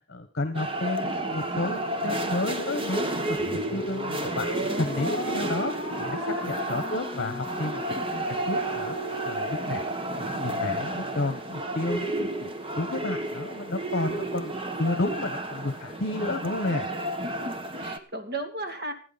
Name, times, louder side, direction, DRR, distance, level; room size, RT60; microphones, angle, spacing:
voice 1, 0.1-5.7 6.0-9.0 9.2-16.9, left 2 dB, 55° left, 8 dB, 1.3 m, -32 dB
sound 1, 0.5-18.0, right 1 dB, 25° right, 1.3 m, -32 dB
sound 2, 3.4-9.9, equal, 85° right, 4.0 m, -36 dB
voice 2, 6.7-7.4 17.2-18.9, right 1 dB, 50° right, 6 dB, 2.6 m, -36 dB
28.0 x 9.5 x 4.2 m, 0.41 s
head